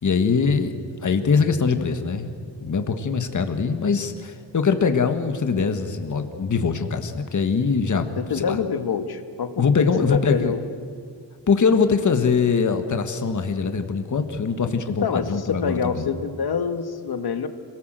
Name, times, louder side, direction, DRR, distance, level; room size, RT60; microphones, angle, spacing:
voice 1, 0.0-2.3 2.6-8.1 8.3-8.6 9.6-10.6 11.5-16.1, left 5 dB, 45° left, 7 dB, 1.7 m, -22 dB
voice 2, 8.2-10.6 14.9-17.5, left 6 dB, 60° left, 9 dB, 1.6 m, -26 dB
26.5 x 18.5 x 7.7 m, 2.1 s
wide cardioid pair, 120°, 42 cm